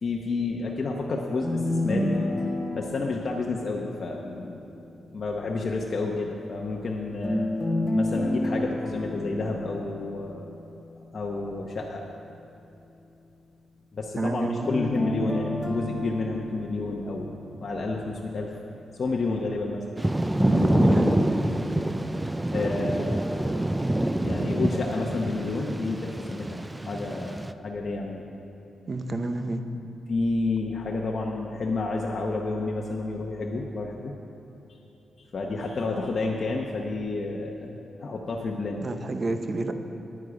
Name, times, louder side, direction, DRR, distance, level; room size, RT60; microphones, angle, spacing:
voice 1, 0.0-2.2 2.7-4.6 5.1-7.5 7.9-10.4 11.1-12.0 13.9-17.3 17.6-18.5 18.9-19.8 20.5-21.1 22.5-23.3 24.2-28.2 30.1-34.1 35.3-39.0, left 3 dB, 50° left, -1 dB, 0.8 m, -30 dB
sound 1, 1.4-4.5 7.2-10.5 14.6-17.7 20.4-21.2, left 1 dB, 15° left, 1.4 m, -29 dB
voice 2, 14.2-14.7 20.9-21.1 28.9-29.6 38.8-39.7, right 2 dB, 40° right, 7 dB, 0.7 m, -29 dB
Thunder / Rain, 20.0-27.5, right 1 dB, 15° right, 0.3 m, -26 dB
9.9 x 9.3 x 5.0 m, 2.9 s
cardioid pair, 80°, 0 cm